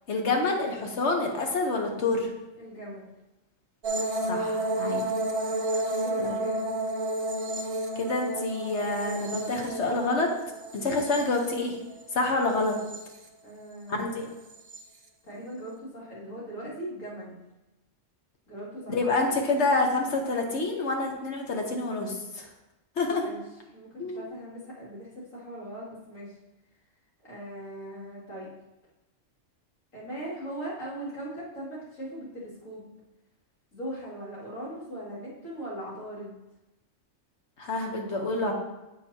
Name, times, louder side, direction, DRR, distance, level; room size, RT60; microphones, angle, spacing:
voice 1, 0.1-2.3 4.3-5.0 6.2-6.4 8.0-10.3 10.7-11.8 12.1-12.8 13.9-14.2 18.9-22.5 23.0-23.3 24.0-24.2 37.6-38.5, left 3 dB, 60° left, 2 dB, 1.3 m, -27 dB
voice 2, 2.6-3.1 5.8-6.6 13.4-14.3 15.2-17.4 18.5-19.0 23.2-23.4 23.7-26.4 27.2-28.6 29.9-33.0 33.7-36.4, right 1 dB, 75° left, -7 dB, 2.8 m, -39 dB
sound 1, 3.8-12.0 12.4-13.2 14.5-14.8, right 1 dB, 40° right, 0.5 m, -31 dB
8.0 x 6.7 x 2.8 m, 1.0 s
omnidirectional pair, 1.4 m